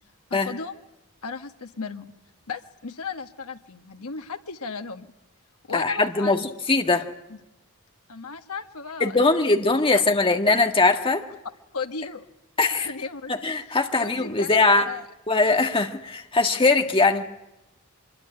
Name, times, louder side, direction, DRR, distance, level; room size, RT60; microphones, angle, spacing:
voice 1, 0.3-0.8 1.2-2.1 2.5-5.1 5.7-6.5 7.3-7.4 8.1-9.5 9.9-10.0 11.7-12.3 12.7-13.3 14.0-15.1, left 5 dB, 80° left, 6 dB, 1.5 m, -35 dB
voice 2, 5.7-6.4 6.7-7.0 9.0-11.2 12.6-12.9 13.3-14.9 15.3-17.2, left 3 dB, 25° left, 5 dB, 1.8 m, -21 dB
25.0 x 22.0 x 9.9 m, 0.94 s
head